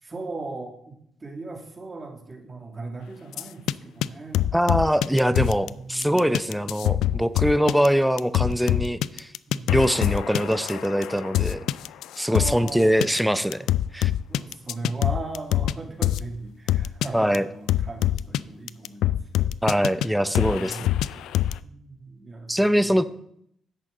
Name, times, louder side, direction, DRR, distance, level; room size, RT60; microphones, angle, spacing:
voice 1, 0.0-4.5 5.6-6.2 9.5-9.8 12.3-12.9 14.3-19.5 20.0-20.8 21.6-23.0, right 3 dB, 30° right, 2 dB, 2.2 m, -38 dB
sound 1, 3.3-3.7 4.0-4.1 4.3-5.7 6.0-12.7 13.0-13.2 13.5-15.7 16.0-16.2 16.7-17.1 17.3-17.4 17.7-18.4 18.7-20.1 20.3-21.6, left 13 dB, 85° left, 0.3 m, -24 dB
voice 2, 4.5-9.3 9.7-11.6 12.2-13.7 13.9-14.1 17.1-17.4 19.6-20.8 22.5-23.0, equal, ahead, 13 dB, 0.6 m, -23 dB
10.5 x 8.2 x 3.9 m, 0.71 s
cardioid pair, 90°, 0 cm